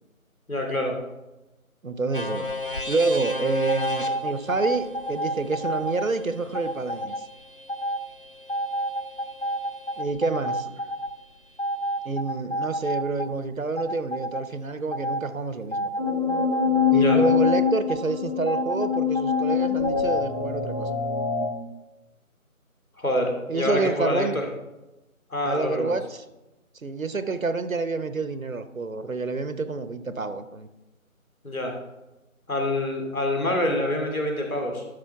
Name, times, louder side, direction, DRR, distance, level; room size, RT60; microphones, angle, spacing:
voice 1, 0.5-0.9 16.9-17.2 23.0-24.5 25.3-25.9 31.4-31.7 32.5-34.8, left 1 dB, 75° left, 1 dB, 2.7 m, -26 dB
voice 2, 1.8-2.5 2.9-7.2 10.0-10.7 12.0-15.9 16.9-20.9 23.5-24.4 25.4-26.2 26.8-30.7, right 3 dB, 70° right, 11 dB, 0.9 m, -28 dB
sound 1, 2.1-10.0, left 2 dB, 40° right, 0.7 m, -37 dB
sound 2, 2.5-2.8 3.7-6.1 6.5-7.2 7.7-8.0 8.5-11.1 11.6-13.5 13.8-14.4 14.9-15.2 15.7-18.0 18.5-20.2, equal, 50° left, 0.5 m, -29 dB
sound 3, 16.0-21.4, left 8 dB, 30° left, 1.3 m, -24 dB
12.5 x 6.4 x 3.6 m, 1.0 s
figure-of-eight pair, 175°, 42 cm